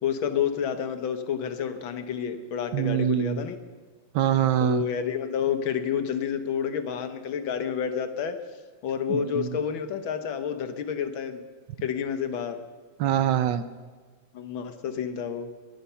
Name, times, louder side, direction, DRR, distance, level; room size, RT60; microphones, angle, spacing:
voice 1, 0.0-3.6 4.6-8.4 8.8-11.4 11.8-12.6 14.3-15.5, left 8 dB, 75° left, 9 dB, 1.9 m, -29 dB
voice 2, 2.7-3.4 4.1-4.9 9.1-9.6 13.0-13.6, right 11 dB, 70° right, 13 dB, 1.2 m, -24 dB
22.5 x 9.5 x 5.7 m, 1.5 s
omnidirectional pair, 2.2 m